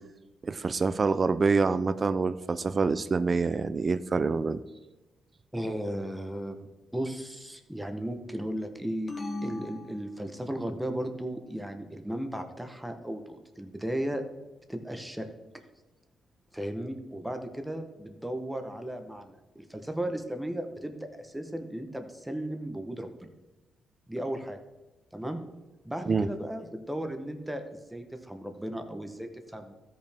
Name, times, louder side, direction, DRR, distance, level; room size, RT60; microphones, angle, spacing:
voice 1, 0.4-4.6 26.1-26.3, right 4 dB, 25° right, 12 dB, 0.3 m, -26 dB
voice 2, 5.5-6.6 6.9-9.1 9.4-14.2 14.7-15.3 16.5-23.3 24.1-24.6 25.1-25.4 25.8-29.7, right 1 dB, 5° right, 6 dB, 0.8 m, -35 dB
sound 1, 9.1-10.8, left 2 dB, 25° left, 0.9 m, -39 dB
15.5 x 5.4 x 3.4 m, 1.1 s
wide cardioid pair, 175°, 0 cm